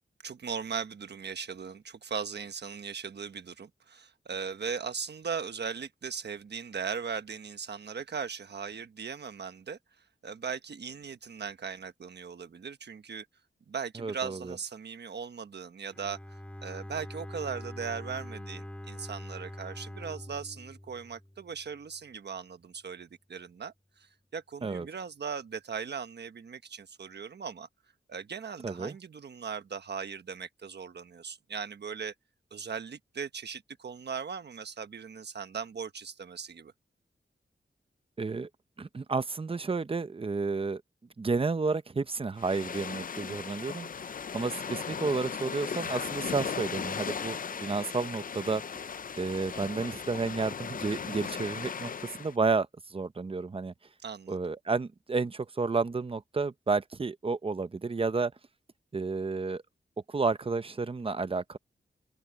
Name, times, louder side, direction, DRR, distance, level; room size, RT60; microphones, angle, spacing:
voice 1, 0.2-9.8 10.2-13.3 13.7-27.7 28.1-32.1 32.5-36.7 54.0-54.4, right 6 dB, 65° right, 1.2 m, -38 dB
voice 2, 14.0-14.5 24.6-24.9 28.6-28.9 38.2-38.5 38.8-40.8 41.2-43.9 44.3-48.6 49.2-53.7 54.3-58.3 58.9-59.6 60.1-61.6, right 4 dB, 30° right, 0.7 m, -31 dB
Bowed string instrument, 15.9-21.8, left 1 dB, 5° left, 1.8 m, -44 dB
sound 1, 42.4-52.3, left 6 dB, 50° left, 0.5 m, -37 dB
open air
wide cardioid pair, 130°, 19 cm